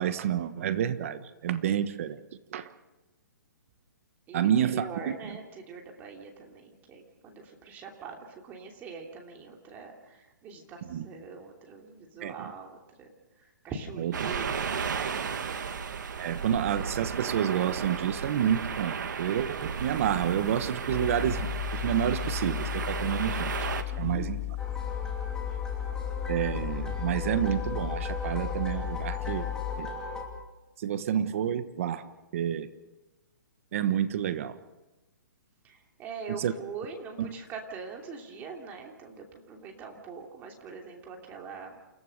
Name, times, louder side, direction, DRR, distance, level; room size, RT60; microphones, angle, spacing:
voice 1, 0.0-2.2 2.5-2.7 4.3-5.4 10.8-11.1 12.2-12.5 14.0-14.3 16.2-23.5 24.0-24.4 26.3-29.5 29.8-29.9 30.8-32.0 32.3-32.7 33.7-34.6 36.3-36.5 37.2-37.3, right 9 dB, 45° right, 12 dB, 1.2 m, -29 dB
voice 2, 4.3-13.1 13.4-15.6 23.9-24.4 25.5-25.6 35.6-41.8, right 5 dB, 15° right, 1 dB, 2.9 m, -43 dB
sound 1, 14.1-23.8, right 6 dB, 70° right, 2.0 m, -34 dB
sound 2, 20.9-29.8, left 19 dB, 45° left, 2.3 m, -35 dB
sound 3, 24.6-30.3, left 1 dB, 5° left, 2.9 m, -37 dB
28.5 x 16.5 x 6.6 m, 1.1 s
hypercardioid pair, 160°, 10 cm